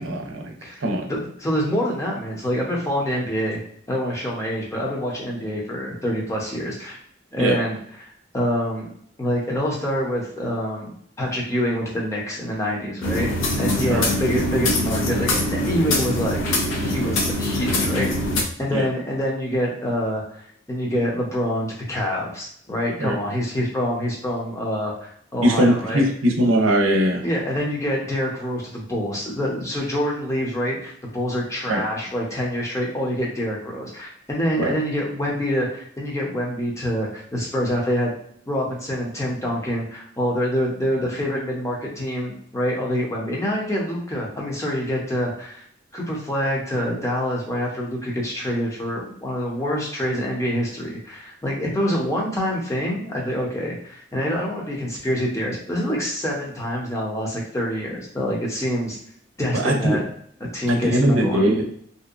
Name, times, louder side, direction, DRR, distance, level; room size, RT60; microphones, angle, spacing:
voice 1, 0.0-0.5 0.8-1.1 7.4-7.6 13.9-14.1 18.7-18.9 23.0-23.2 25.4-27.2 31.7-31.8 34.6-34.7 59.5-60.0 60.7-61.7, right 1 dB, 90° right, 3 dB, 0.5 m, -20 dB
voice 2, 0.6-3.6 3.9-7.0 7.3-8.9 9.2-10.9 11.2-13.3 13.6-16.4 16.8-18.1 18.6-20.4 20.7-26.1 27.2-38.1 38.5-45.6 45.9-59.0 59.4-60.0 60.4-61.5, equal, 15° left, -3 dB, 0.6 m, -26 dB
sound 1, 13.0-18.4, left 1 dB, 75° left, 0.5 m, -23 dB
2.7 x 2.1 x 2.4 m, 0.64 s
head